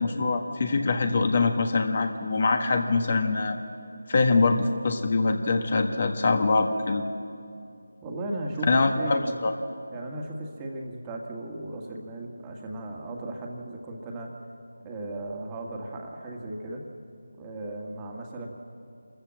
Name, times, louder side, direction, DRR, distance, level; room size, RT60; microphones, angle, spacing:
voice 1, 0.0-3.6 4.1-7.0 8.7-9.5, left 3 dB, 45° left, 6 dB, 1.6 m, -24 dB
voice 2, 8.0-9.4 9.9-14.3 14.8-16.9 17.3-18.5, right 1 dB, 15° right, 0 dB, 1.9 m, -36 dB
26.5 x 14.5 x 7.7 m, 2.5 s
figure-of-eight pair, 160°, 0 cm